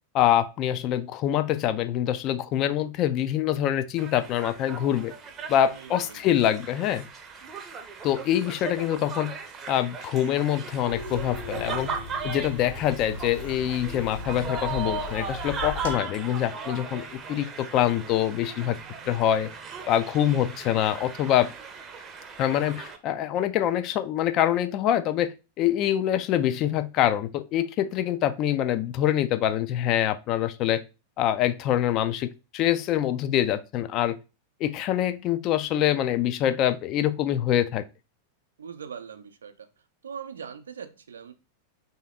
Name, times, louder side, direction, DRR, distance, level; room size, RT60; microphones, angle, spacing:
voice 1, 0.1-5.1 5.5-7.1 8.0-9.3 9.7-11.9 12.2-18.8 19.1-19.5 19.9-21.5 22.4-30.8 31.2-34.2 34.6-37.8, left 11 dB, 40° left, 0.3 m, -25 dB
sound 1, 4.0-23.0, right 5 dB, 25° right, 0.6 m, -38 dB
voice 2, 5.7-6.2 38.6-39.7 40.0-41.3, right 7 dB, 70° right, 0.5 m, -41 dB
sound 2, 10.9-15.9, left 3 dB, 60° left, 1.0 m, -38 dB
3.4 x 2.8 x 3.5 m
figure-of-eight pair, 90°, 0 cm